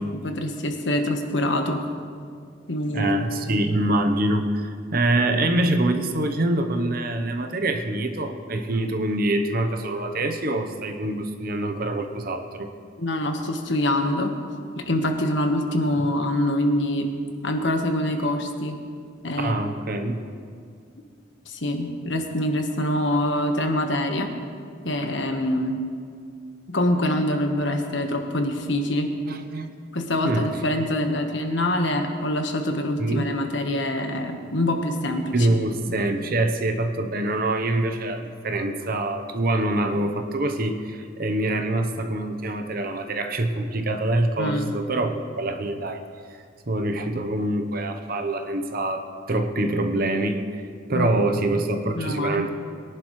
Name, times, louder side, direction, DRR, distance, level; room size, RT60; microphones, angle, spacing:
voice 1, 0.0-1.8 2.7-3.3 13.0-14.3 14.8-17.1 17.4-18.8 19.2-19.5 21.5-24.3 24.8-25.8 26.7-29.1 29.9-35.5 44.4-44.7 50.9-51.1 51.9-52.4, left 1 dB, 65° left, 4 dB, 1.3 m, -25 dB
voice 2, 2.9-12.7 19.4-20.2 29.3-29.9 30.2-30.6 33.0-33.3 35.3-46.0 46.3-50.6 50.9-52.5, right 1 dB, 50° right, 6 dB, 0.9 m, -25 dB
22.5 x 11.0 x 3.2 m, 2.2 s
head